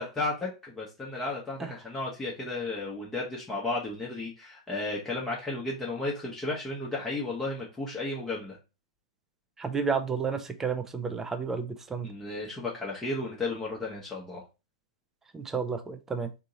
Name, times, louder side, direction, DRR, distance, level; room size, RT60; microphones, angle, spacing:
voice 1, 0.0-8.6 12.0-14.5, left 2 dB, 10° left, 0.9 m, -33 dB
voice 2, 9.6-12.1 15.3-16.3, right 5 dB, 10° right, 0.5 m, -31 dB
3.7 x 2.8 x 3.8 m
figure-of-eight pair, 105°, 3 cm